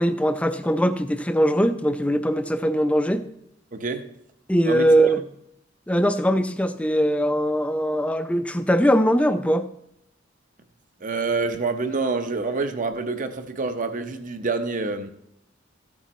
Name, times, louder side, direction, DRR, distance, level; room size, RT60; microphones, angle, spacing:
voice 1, 0.0-3.3 4.5-5.2 5.9-9.7, equal, 5° left, 10 dB, 0.5 m, -21 dB
voice 2, 3.7-4.1 4.7-4.8 11.0-15.1, right 3 dB, 40° right, 8 dB, 0.8 m, -27 dB
14.5 x 8.3 x 3.1 m, 0.78 s
head